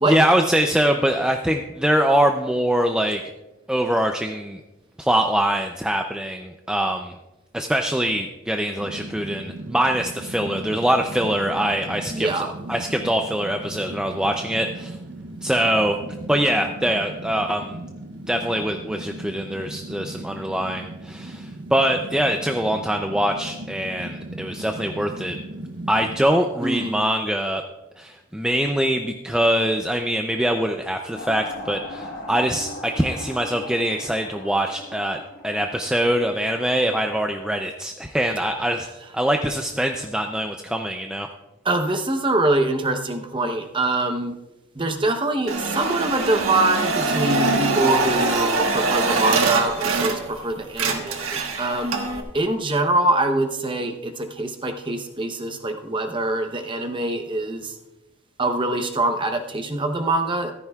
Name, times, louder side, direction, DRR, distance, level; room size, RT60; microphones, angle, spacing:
voice 1, 0.0-3.2 3.7-4.6 5.0-7.1 7.5-15.0 15.4-16.0 16.3-17.8 18.3-25.4 25.9-27.6 28.0-38.9 39.1-41.3, right 1 dB, 5° right, 4 dB, 0.4 m, -23 dB
Fire, 8.8-26.2, right 1 dB, 50° right, 0.8 m, -37 dB
voice 2, 12.1-12.5 26.6-27.1 41.6-44.3 44.8-52.0 52.3-57.7 58.4-60.5, right 2 dB, 25° right, 6 dB, 0.8 m, -24 dB
sound 1, 31.1-37.2, left 1 dB, 45° left, 1.3 m, -39 dB
sound 2, 45.5-50.4 50.7-52.2, right 3 dB, 75° right, 1.4 m, -23 dB
15.0 x 13.0 x 2.4 m, 1.0 s
head